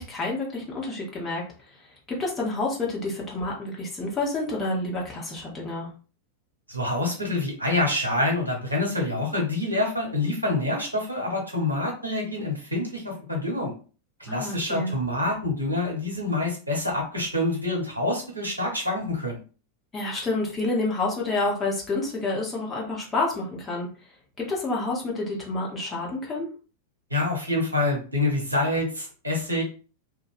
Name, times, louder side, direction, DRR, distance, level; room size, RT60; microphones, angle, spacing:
voice 1, 0.0-1.4 2.1-5.9 14.3-14.9 19.9-23.9 24.4-26.5, left 2 dB, 20° left, -3 dB, 0.9 m, -29 dB
voice 2, 6.7-13.7 14.2-19.4 27.1-29.6, left 2 dB, 85° right, -1 dB, 0.9 m, -26 dB
2.4 x 2.1 x 2.4 m, 0.36 s
figure-of-eight pair, 90°, 0 cm